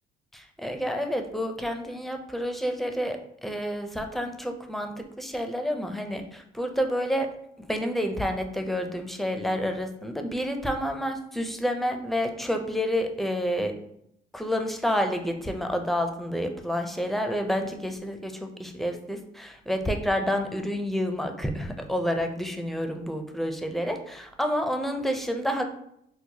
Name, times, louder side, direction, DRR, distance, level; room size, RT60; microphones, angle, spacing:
voice 1, 0.3-4.9 5.2-7.3 7.6-13.7 14.3-25.6, equal, ahead, 4 dB, 0.4 m, -29 dB
4.5 x 2.0 x 2.7 m, 0.74 s
cardioid pair, 90°, 20 cm